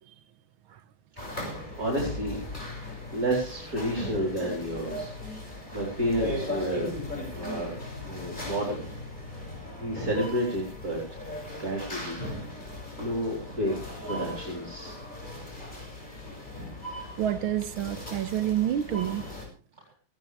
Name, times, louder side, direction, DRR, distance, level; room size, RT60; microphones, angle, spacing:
sound 1, 1.2-19.4, left 1 dB, 20° left, 6.4 m, -38 dB
voice 1, 1.7-2.4 3.1-5.1 5.4-6.9 7.3-7.7 8.0-8.8 9.3-9.4 9.8-11.0 11.6-12.2 13.0-13.7 14.1-15.0 19.8-19.9, equal, 45° right, 4.7 m, -30 dB
voice 2, 17.2-19.3, right 11 dB, 80° right, 1.9 m, -28 dB
18.5 x 17.0 x 3.4 m
omnidirectional pair, 2.2 m